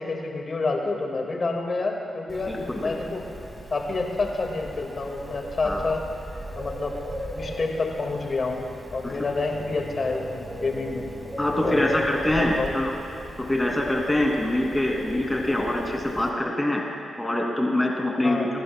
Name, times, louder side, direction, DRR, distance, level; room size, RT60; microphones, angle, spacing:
voice 1, 0.0-3.3 3.7-6.0 6.6-7.0 7.3-8.6 8.9-11.1 11.6-11.9 12.4-12.7 18.2-18.5, left 3 dB, 50° left, 2 dB, 1.9 m, -28 dB
Bird, 2.3-16.3, equal, 15° right, 2.1 m, -38 dB
voice 2, 2.5-3.0 5.6-5.8 9.0-9.2 11.4-12.9 13.4-16.8 17.2-18.5, left 1 dB, 15° left, -1 dB, 2.5 m, -24 dB
23.5 x 11.0 x 2.2 m, 3.0 s
hypercardioid pair, 40°, 0 cm